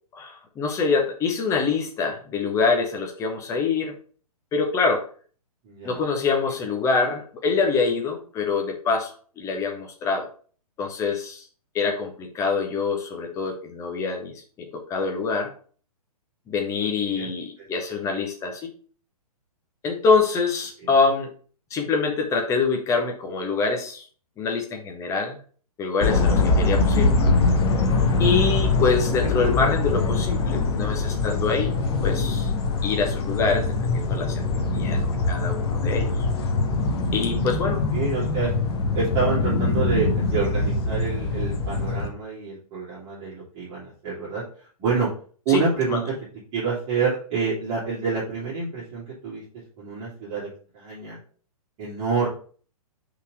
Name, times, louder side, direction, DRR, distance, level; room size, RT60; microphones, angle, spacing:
voice 1, 0.1-3.9 4.5-5.0 5.8-10.3 10.8-11.4 11.7-14.3 14.7-15.5 16.5-18.7 19.8-21.3 21.7-24.0 24.4-25.4 25.8-27.1 28.2-31.7 32.0-32.5 32.8-34.5 34.7-35.0 35.3-36.1 37.1-37.8 45.5-45.6 45.9-46.0, left 4 dB, 15° left, 3 dB, 1.0 m, -25 dB
voice 2, 5.6-6.0 17.1-17.3 17.6-17.7 20.8-20.9 29.2-29.3 37.9-38.5 38.9-44.4 44.8-45.1 45.4-46.1 46.5-49.4 49.8-50.5 50.7-51.2 51.8-52.3, right 5 dB, 25° right, -9 dB, 2.4 m, -27 dB
sound 1, 26.0-42.1, left 3 dB, 40° left, 1.0 m, -23 dB
5.5 x 4.1 x 4.8 m, 0.42 s
figure-of-eight pair, 120°, 20 cm